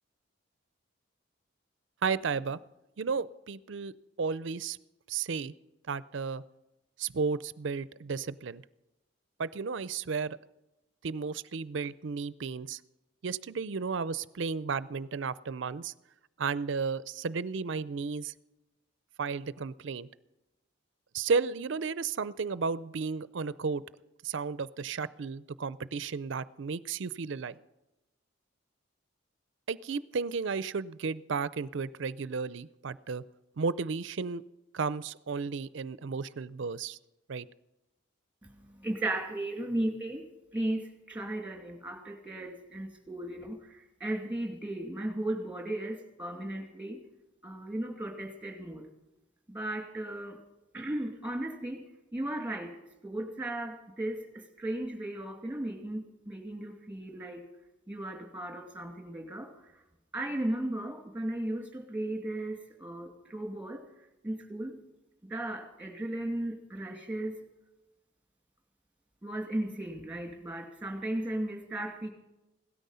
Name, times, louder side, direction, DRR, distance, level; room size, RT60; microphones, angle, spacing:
voice 1, 2.0-2.6 3.0-3.9 4.2-4.8 5.1-5.5 5.9-6.4 7.0-8.6 9.4-10.4 11.0-12.8 13.2-15.9 16.4-18.3 19.2-20.1 21.1-23.8 24.2-27.5 29.7-33.2 33.6-34.4 34.7-37.0 37.3-37.5, right 5 dB, 65° right, 18 dB, 0.5 m, -33 dB
voice 2, 38.4-40.2 40.5-47.0 47.4-48.9 49.5-50.4 50.7-51.8 52.1-52.8 53.0-57.4 57.9-59.5 60.1-63.8 64.2-64.8 65.2-67.4 69.2-72.1, right 1 dB, 5° right, 2 dB, 2.3 m, -36 dB
17.0 x 13.0 x 5.6 m, 0.98 s
head